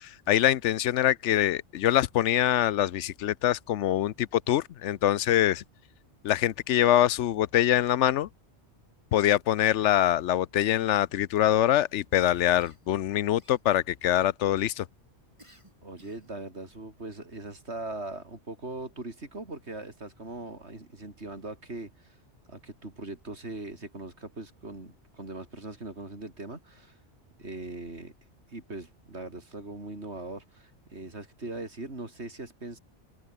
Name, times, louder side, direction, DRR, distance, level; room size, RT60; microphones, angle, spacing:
voice 1, 0.0-5.6 6.2-8.3 9.1-14.9, left 12 dB, 85° left, 1.0 m, -24 dB
Cough, 12.1-13.0 13.4-14.0 15.4-16.4, right 1 dB, 25° right, 7.0 m, -58 dB
voice 2, 15.8-22.2 22.5-27.0 27.4-28.1 28.5-32.8, right 2 dB, 70° right, 4.6 m, -40 dB
open air
omnidirectional pair, 1.2 m